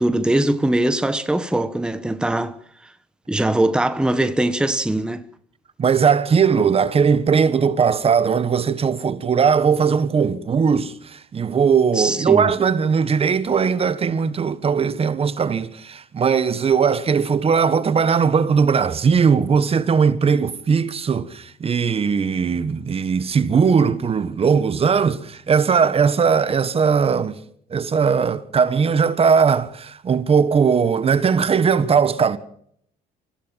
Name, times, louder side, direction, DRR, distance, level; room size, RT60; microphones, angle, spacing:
voice 1, 0.0-2.6 3.3-5.3 11.9-12.4, right 1 dB, 5° right, 1.2 m, -21 dB
voice 2, 5.8-27.4 27.7-32.4, right 6 dB, 35° right, 1.5 m, -19 dB
25.0 x 16.0 x 7.5 m
cardioid pair, 110°, 17 cm